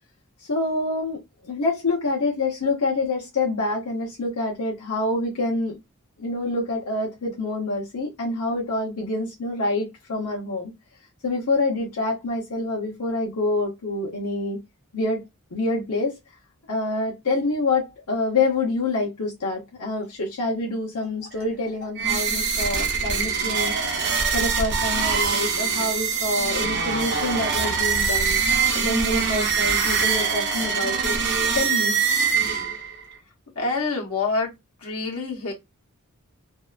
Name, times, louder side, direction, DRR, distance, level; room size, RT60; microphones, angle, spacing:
voice 1, 0.5-1.2 1.4-5.8 6.2-10.7 11.2-14.6 14.9-15.2 15.5-16.2 16.7-17.8 18.1-23.8 24.3-28.4 28.7-31.1 31.5-32.0, left 2 dB, 85° left, 0.9 m, -26 dB
sound 1, 22.0-33.0, right 6 dB, 55° right, 0.8 m, -23 dB
voice 2, 33.6-34.5 34.8-35.5, left 3 dB, 70° left, 1.1 m, -26 dB
2.7 x 2.4 x 2.3 m
head